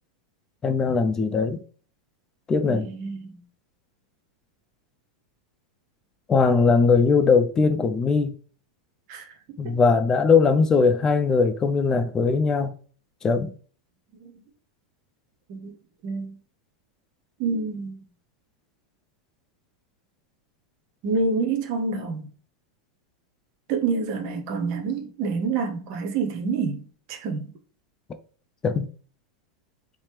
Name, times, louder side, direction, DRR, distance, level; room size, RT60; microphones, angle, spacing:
voice 1, 0.6-1.6 2.5-2.9 6.3-8.3 9.6-12.7 13.2-13.5 28.6-28.9, left 4 dB, 20° left, 0.5 m, -20 dB
voice 2, 2.7-3.3 9.1-9.2 9.6-9.7 14.2-14.3 15.5-15.8 16.0-16.3 17.4-18.0 21.0-22.3 23.7-26.8 27.1-27.5, right 4 dB, 50° right, 0.7 m, -27 dB
4.2 x 2.0 x 3.2 m
figure-of-eight pair, 90°, 3 cm